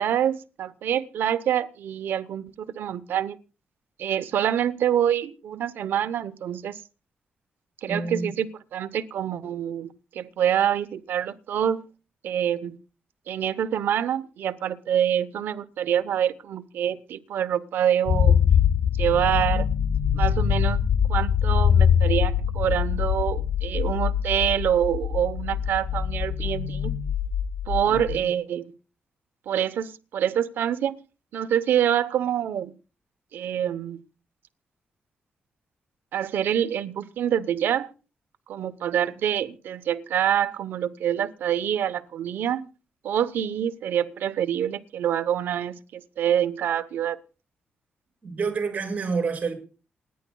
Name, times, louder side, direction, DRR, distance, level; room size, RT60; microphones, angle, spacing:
voice 1, 0.0-3.4 4.0-6.8 7.8-11.8 12.2-12.7 13.3-18.4 19.0-19.7 20.1-20.8 21.1-26.9 27.7-28.7 29.5-31.0 31.3-32.7 33.3-34.0 36.1-37.9 38.5-42.7 43.0-47.2, right 10 dB, 85° right, 0.8 m, -26 dB
voice 2, 7.9-8.3 27.9-28.3 48.2-49.5, right 4 dB, 45° right, 5.1 m, -29 dB
sound 1, 18.1-28.2, left 8 dB, 60° left, 0.5 m, -23 dB
28.0 x 10.5 x 2.3 m
cardioid pair, 90°, 3 cm